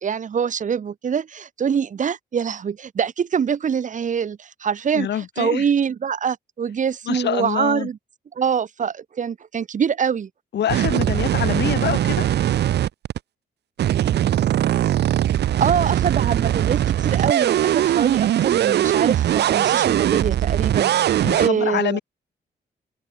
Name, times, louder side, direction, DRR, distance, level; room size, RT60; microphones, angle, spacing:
voice 1, 0.0-8.0 8.3-10.3 15.6-22.0, right 7 dB, 45° right, 1.3 m, -24 dB
voice 2, 4.9-5.6 7.1-7.9 10.5-12.3 21.2-22.0, left 10 dB, 75° left, 2.4 m, -25 dB
sound 1, 10.7-13.2 13.8-21.5, right 11 dB, 70° right, 0.6 m, -20 dB
wide cardioid pair, 140°, 18 cm